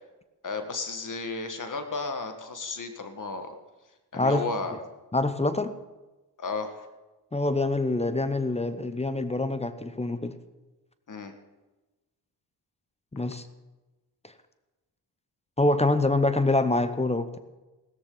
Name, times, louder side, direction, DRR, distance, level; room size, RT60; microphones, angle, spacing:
voice 1, 0.4-3.5 4.1-4.8 6.4-6.9 11.1-11.3, left 3 dB, 50° left, 7 dB, 1.7 m, -33 dB
voice 2, 4.1-4.5 4.7-4.8 5.1-5.8 7.3-10.4 13.1-13.5 15.6-17.4, left 2 dB, 15° left, 11 dB, 0.9 m, -25 dB
16.0 x 13.5 x 3.9 m, 1.1 s
cardioid pair, 60°, 41 cm